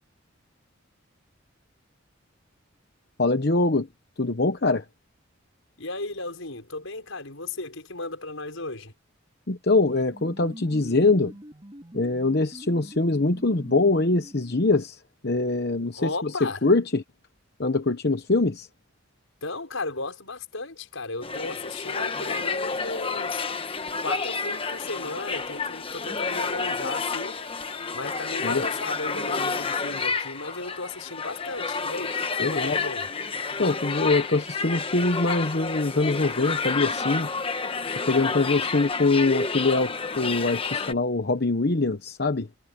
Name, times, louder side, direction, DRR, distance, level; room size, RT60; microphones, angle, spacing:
voice 1, 3.2-3.9 4.2-4.8 9.5-11.3 11.9-16.0 16.4-17.0 17.6-18.7 28.4-28.6 32.4-32.8 33.6-37.3 38.1-42.5, left 3 dB, 50° left, 1.0 m, -23 dB
voice 2, 5.8-8.9 15.9-16.6 19.4-23.4 24.0-27.5 27.9-33.1, left 3 dB, 80° left, 5.9 m, -35 dB
sound 1, 9.8-14.7, equal, 25° right, 3.8 m, -45 dB
sound 2, 21.2-40.9, left 4 dB, 25° left, 1.1 m, -30 dB
head